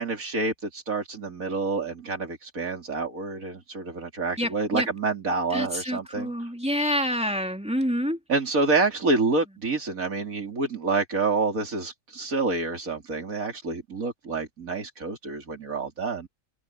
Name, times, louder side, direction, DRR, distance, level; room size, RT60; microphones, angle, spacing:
voice 1, 0.0-6.3 8.3-16.3, right 3 dB, 60° right, 3.6 m, -28 dB
voice 2, 4.4-4.9 5.5-8.2, equal, 5° right, 3.0 m, -27 dB
omnidirectional pair, 1.6 m